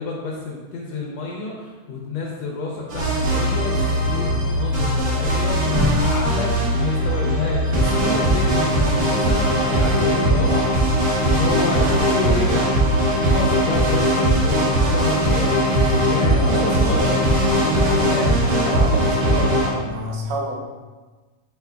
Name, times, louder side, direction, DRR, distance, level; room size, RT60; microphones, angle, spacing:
voice 1, 0.0-12.7 13.0-18.4 19.0-19.1, left 3 dB, 75° left, -2 dB, 1.7 m, -29 dB
sound 1, 2.9-19.7, equal, 55° right, 1.2 m, -19 dB
voice 2, 16.3-17.3 18.7-20.6, right 1 dB, 85° right, 0 dB, 2.2 m, -29 dB
4.9 x 4.7 x 2.3 m, 1.3 s
omnidirectional pair, 3.4 m